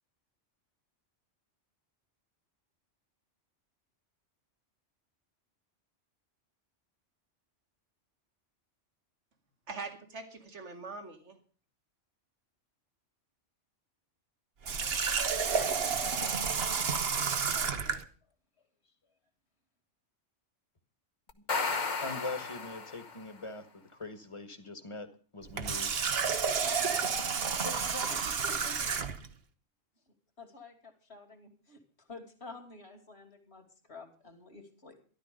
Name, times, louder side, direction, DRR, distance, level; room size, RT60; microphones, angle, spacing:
voice 1, 9.7-11.4 26.5-27.3, right 3 dB, 75° right, 2.4 m, -42 dB
Water tap faucet, 14.6-18.0 25.4-29.3, right 6 dB, 60° right, 1.3 m, -31 dB
voice 2, 15.5-18.0 27.6-29.0 30.4-35.0, left 2 dB, 60° left, 2.9 m, -48 dB
sound 1, 21.3-23.3, left 4 dB, 40° left, 1.2 m, -34 dB
voice 3, 22.0-23.6 24.0-25.1 25.3-25.9, left 3 dB, 25° left, 1.7 m, -41 dB
13.0 x 12.0 x 5.2 m
omnidirectional pair, 1.2 m